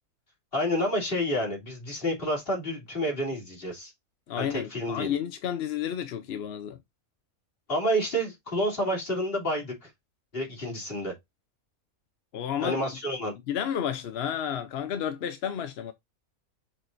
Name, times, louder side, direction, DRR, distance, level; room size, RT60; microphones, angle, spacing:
voice 1, 0.5-3.9 4.4-5.1 7.7-9.9 10.3-11.1 12.6-13.3, equal, 40° left, 3.4 m, -29 dB
voice 2, 4.3-6.8 12.3-12.9 13.5-15.9, left 9 dB, 60° left, 0.7 m, -31 dB
7.3 x 5.0 x 2.6 m
omnidirectional pair, 1.5 m